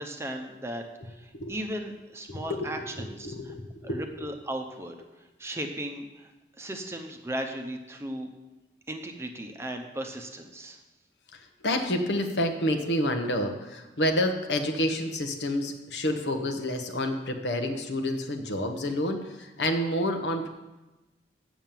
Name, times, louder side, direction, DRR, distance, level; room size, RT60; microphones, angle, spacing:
voice 1, 0.0-3.5 3.8-5.0 5.4-6.3 6.6-8.3 8.9-10.8, right 1 dB, 15° right, 4 dB, 0.7 m, -36 dB
voice 2, 2.3-2.9 3.2-4.2 11.3-20.5, left 1 dB, 75° left, 5 dB, 1.1 m, -29 dB
7.4 x 7.1 x 7.4 m, 1.1 s
head